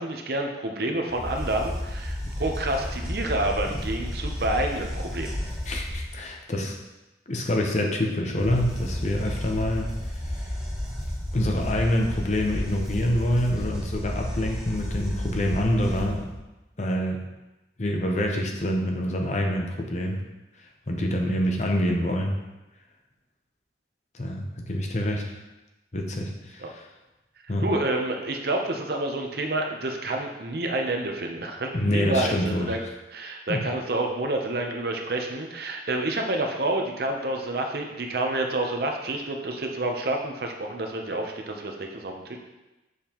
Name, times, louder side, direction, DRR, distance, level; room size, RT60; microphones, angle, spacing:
voice 1, 0.0-5.4 26.6-26.7 27.6-32.8 33.1-42.4, right 2 dB, 55° right, 3 dB, 0.7 m, -28 dB
sound 1, 1.1-6.3 8.3-16.4, left 1 dB, 5° right, 1.4 m, -32 dB
voice 2, 5.7-6.7 7.3-9.9 10.4-10.5 11.3-16.3 16.8-17.2 17.8-20.2 20.9-22.4 24.1-25.2 25.9-26.8 27.5-27.6 31.7-32.7 33.5-33.6, left 1 dB, 40° left, 1 dB, 0.8 m, -26 dB
6.5 x 5.3 x 3.0 m, 1.0 s
head